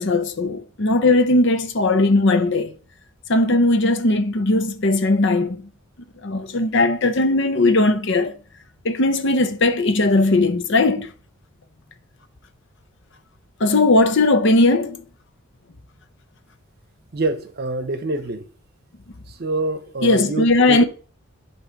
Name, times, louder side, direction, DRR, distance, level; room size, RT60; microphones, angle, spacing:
voice 1, 0.0-2.7 3.3-5.7 6.2-8.3 8.8-11.1 13.6-15.0 20.0-20.8, left 2 dB, 60° left, 0.7 m, -18 dB
voice 2, 17.1-18.5 19.3-20.8, right 2 dB, 50° right, 0.8 m, -26 dB
8.2 x 3.1 x 5.8 m
head